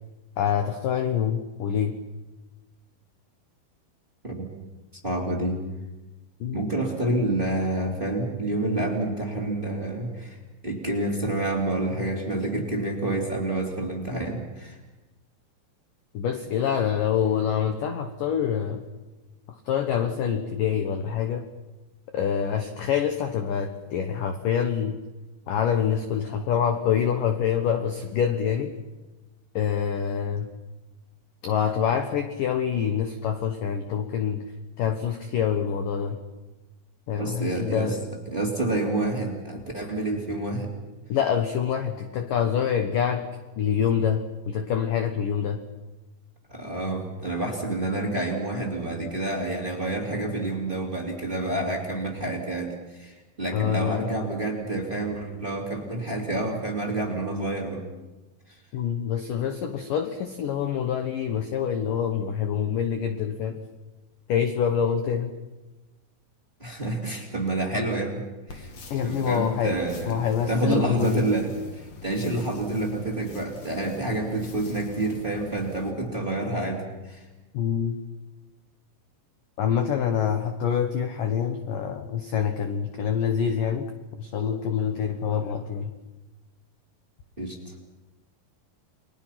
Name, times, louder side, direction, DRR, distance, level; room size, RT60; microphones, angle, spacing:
voice 1, 0.4-2.0 6.4-6.6 16.1-18.8 19.7-21.4 22.1-25.0 25.5-28.7 29.5-30.5 31.4-34.5 34.8-36.2 37.1-38.0 41.1-43.3 43.6-45.6 53.5-54.2 58.7-63.6 64.3-65.3 68.9-69.8 70.1-71.3 77.5-77.9 79.6-83.9 84.2-85.9, left 8 dB, 70° left, 7 dB, 2.1 m, -26 dB
voice 2, 4.9-5.6 6.5-10.4 10.6-14.8 37.2-38.0 38.3-40.7 46.5-57.8 58.5-58.6 66.6-68.2 68.5-68.7 69.0-77.3 87.4-87.7, right 2 dB, 15° right, 0 dB, 2.4 m, -28 dB
sound 1, 68.5-75.9, left 3 dB, 45° left, 2.6 m, -45 dB
30.0 x 22.0 x 5.9 m, 1.1 s
omnidirectional pair, 5.4 m